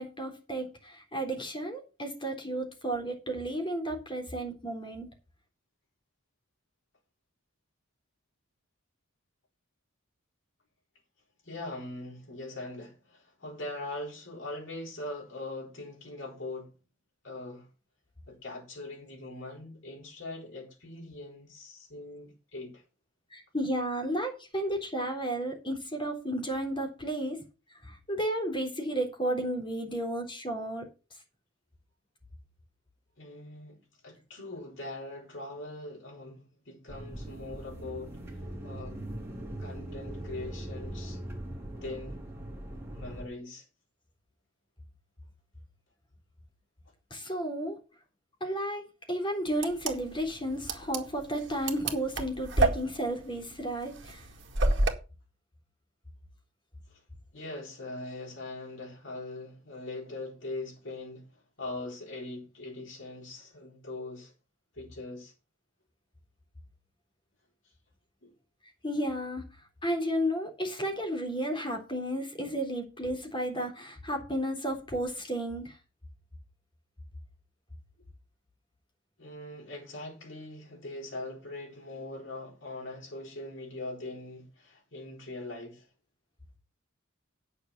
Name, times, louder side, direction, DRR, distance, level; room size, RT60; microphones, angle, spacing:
voice 1, 0.0-5.1 23.3-27.4 27.7-30.9 47.1-47.8 48.4-54.3 68.8-69.5 69.8-75.8, right 1 dB, 25° left, 3.6 m, -33 dB
voice 2, 11.4-16.7 17.2-17.7 18.3-22.8 33.2-39.0 39.6-41.4 41.8-42.2 42.9-43.6 56.9-57.0 57.3-64.3 64.7-65.3 68.2-68.3 79.2-85.9, left 2 dB, 60° left, 4.7 m, -41 dB
sound 1, 36.9-43.2, right 1 dB, 10° right, 3.2 m, -40 dB
sound 2, 49.5-54.9, right 2 dB, 55° right, 2.0 m, -29 dB
9.3 x 6.8 x 7.1 m
head